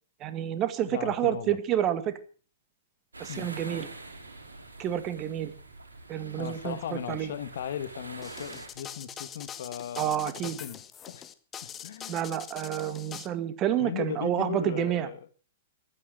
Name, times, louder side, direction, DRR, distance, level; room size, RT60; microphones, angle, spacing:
voice 1, 0.2-2.2 3.2-3.9 4.8-5.5 6.1-7.3 10.0-10.6 12.1-15.1, right 11 dB, 30° right, 1.9 m, -29 dB
voice 2, 0.9-1.6 3.3-3.5 6.4-10.8 11.1-11.2 11.6-12.3 13.7-15.3, left 9 dB, 60° left, 1.5 m, -37 dB
sound 1, 3.1-8.7, right 2 dB, 80° right, 3.9 m, -45 dB
sound 2, 8.2-13.3, left 9 dB, 20° left, 1.5 m, -43 dB
14.5 x 12.5 x 6.6 m
figure-of-eight pair, 105°, 0 cm